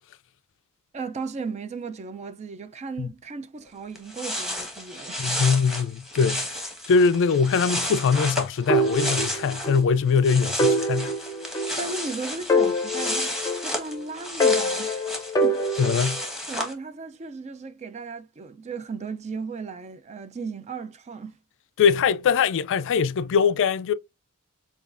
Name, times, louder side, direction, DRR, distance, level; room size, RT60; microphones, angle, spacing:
voice 1, 0.9-5.3 11.8-15.1 15.4-16.1 16.5-21.4, right 4 dB, 30° right, 0.4 m, -36 dB
sound 1, 3.7-3.8 3.9-9.8 10.1-16.7, left 1 dB, ahead, 1.2 m, -32 dB
voice 2, 5.2-6.6 6.9-11.1 15.8-16.2 21.8-23.9, left 6 dB, 60° left, 0.3 m, -22 dB
sound 2, 8.7-9.9 10.1-10.2 10.6-12.1 12.5-13.9 14.4-16.2, equal, 15° left, 0.6 m, -24 dB
6.9 x 2.3 x 2.5 m
head